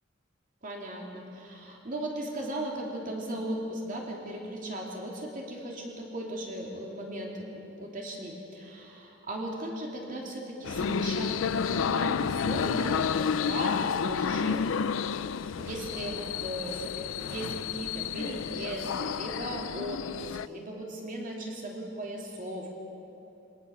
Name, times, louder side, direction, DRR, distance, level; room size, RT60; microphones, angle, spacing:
voice 1, 0.6-14.7 15.6-22.7, right 1 dB, 45° right, -1 dB, 3.0 m, -37 dB
sound 1, 10.6-20.5, left 6 dB, 90° left, 0.4 m, -30 dB
24.0 x 19.0 x 7.1 m, 3.0 s
head